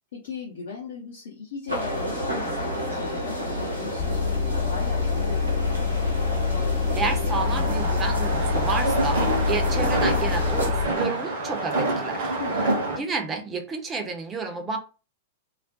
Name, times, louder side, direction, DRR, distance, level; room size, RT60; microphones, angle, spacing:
voice 1, 0.1-5.8 12.4-12.7, left 5 dB, 60° left, 0.6 m, -38 dB
sound 1, 1.7-10.7, equal, 90° right, 0.8 m, -30 dB
Motor vehicle (road) / Engine, 4.0-10.9, left 6 dB, 45° left, 1.0 m, -26 dB
voice 2, 7.0-12.3 13.0-14.8, right 4 dB, 20° right, 0.5 m, -31 dB
sound 2, 7.3-13.0, right 2 dB, 55° right, 0.8 m, -27 dB
2.4 x 2.0 x 2.6 m
figure-of-eight pair, 100°, 0 cm